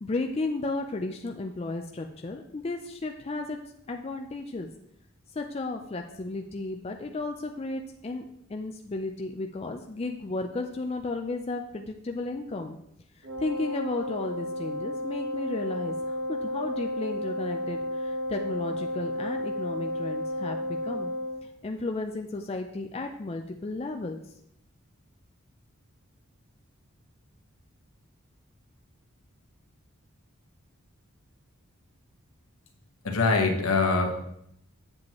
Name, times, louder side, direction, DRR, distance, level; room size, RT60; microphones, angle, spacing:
voice 1, 0.0-3.6 3.9-4.7 5.3-12.8 13.2-21.1 21.4-24.2, left 2 dB, 30° left, 4 dB, 0.4 m, -34 dB
Wind instrument woodwind instrument, 13.2-21.4, left 1 dB, 75° right, 1.1 m, -32 dB
voice 2, 33.0-34.1, left 3 dB, 80° left, 2 dB, 1.3 m, -23 dB
7.6 x 7.3 x 3.0 m, 0.75 s
head